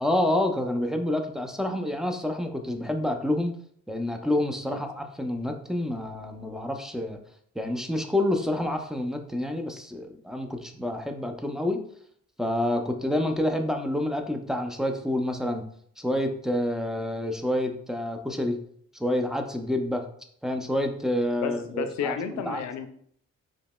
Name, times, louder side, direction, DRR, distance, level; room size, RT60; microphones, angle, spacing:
voice 1, 0.0-3.5 3.9-7.2 7.6-11.8 12.4-15.7 16.0-18.6 18.9-20.0 20.4-22.6, left 1 dB, ahead, 3 dB, 0.4 m, -28 dB
voice 2, 21.4-22.9, left 7 dB, 65° left, 8 dB, 0.6 m, -31 dB
4.9 x 2.8 x 2.2 m, 0.64 s
cardioid pair, 90°, 30 cm